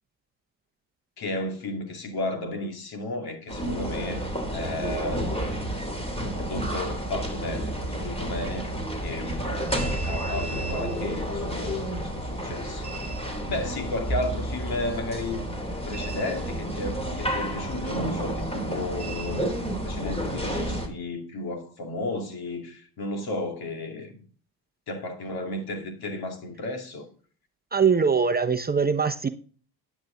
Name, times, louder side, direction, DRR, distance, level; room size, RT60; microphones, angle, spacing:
voice 1, 1.2-5.5 6.1-8.7 9.0-13.0 13.5-24.2 24.9-27.1, left 2 dB, 50° left, 2.6 m, -34 dB
sound 1, 3.5-20.9, right 1 dB, 15° left, 3.1 m, -30 dB
voice 2, 27.7-29.3, right 5 dB, 20° right, 0.8 m, -22 dB
10.5 x 8.3 x 3.8 m
hypercardioid pair, 65°, 46 cm